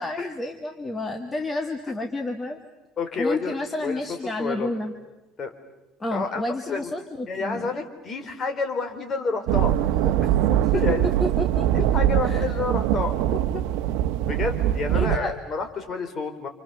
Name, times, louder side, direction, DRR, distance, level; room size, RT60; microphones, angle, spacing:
voice 1, 0.0-2.6 3.2-4.9 6.0-7.7 10.7-10.8 11.2-11.7 12.2-12.5 14.9-15.4, left 2 dB, 15° left, 5 dB, 1.8 m, -30 dB
voice 2, 3.0-3.6 3.8-4.0 4.4-4.7 5.4-5.5 6.1-6.9 7.3-10.1 10.7-11.1 11.7-13.6 14.3-16.5, left 4 dB, 35° left, 6 dB, 3.8 m, -29 dB
sound 1, 9.5-15.2, right 12 dB, 80° right, 1.0 m, -22 dB
29.0 x 28.0 x 6.9 m, 1.0 s
cardioid pair, 140°, 0 cm